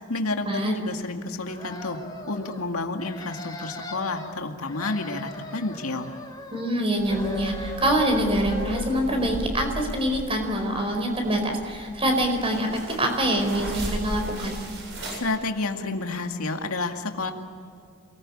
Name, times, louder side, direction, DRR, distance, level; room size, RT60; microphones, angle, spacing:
voice 1, 0.1-6.1 15.2-17.3, left 3 dB, 85° left, 4 dB, 2.2 m, -30 dB
sound 1, 1.5-2.6 3.0-4.3 4.6-6.8 7.1-9.1, left 1 dB, 20° left, 3.0 m, -38 dB
voice 2, 6.5-14.6, right 1 dB, 25° right, 4 dB, 4.7 m, -25 dB
sound 2, 7.0-15.2, right 1 dB, 60° right, 7.8 m, -36 dB
28.0 x 20.0 x 8.7 m, 2.3 s
head